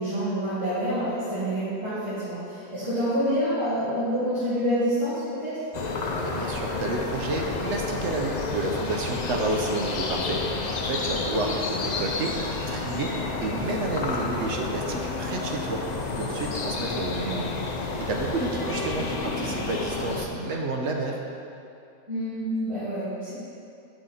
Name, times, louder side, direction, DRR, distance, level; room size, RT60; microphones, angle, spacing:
voice 1, 0.0-5.5 11.3-11.5 18.5-19.5 22.1-23.3, equal, 20° right, -13 dB, 1.8 m, -28 dB
sound 1, 5.7-20.3, left 3 dB, 75° left, 0.3 m, -30 dB
voice 2, 6.2-12.4 12.7-15.8 16.2-17.6 18.0-21.2, right 2 dB, 60° right, 1 dB, 0.9 m, -30 dB
8.0 x 5.8 x 4.1 m, 2.6 s
omnidirectional pair, 1.6 m